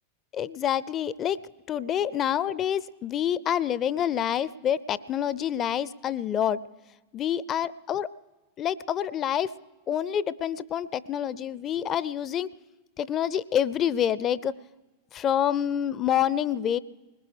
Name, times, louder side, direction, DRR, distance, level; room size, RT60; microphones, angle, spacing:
voice 1, 0.3-1.4 1.7-6.6 7.1-8.1 8.6-9.5 9.9-12.5 13.0-14.5 15.1-16.8, left 9 dB, 30° left, 19 dB, 0.4 m, -27 dB
21.0 x 19.5 x 3.4 m, 1.1 s
figure-of-eight pair, 90°, 0 cm